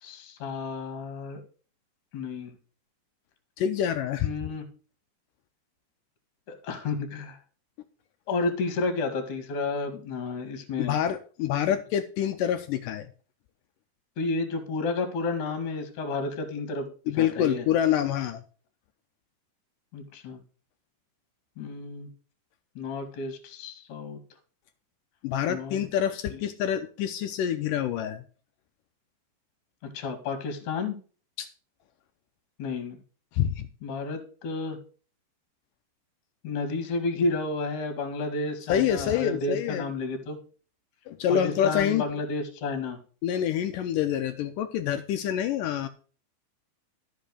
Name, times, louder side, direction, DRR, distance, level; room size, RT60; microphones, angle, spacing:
voice 1, 0.0-1.4 2.1-2.5 4.2-4.6 6.5-7.4 8.3-11.0 14.2-17.6 19.9-20.4 21.6-22.1 22.8-24.2 25.5-25.8 26.3-26.4 29.8-31.0 32.6-33.0 33.8-34.8 36.4-40.4 41.3-43.0, left 3 dB, 60° left, 5 dB, 3.2 m, -31 dB
voice 2, 3.6-4.3 10.8-13.1 17.1-18.4 25.2-28.2 31.4-31.5 33.3-33.7 38.7-39.9 41.1-42.0 43.2-45.9, left 10 dB, 80° left, 8 dB, 2.0 m, -27 dB
13.0 x 5.5 x 6.5 m, 0.39 s
omnidirectional pair, 4.3 m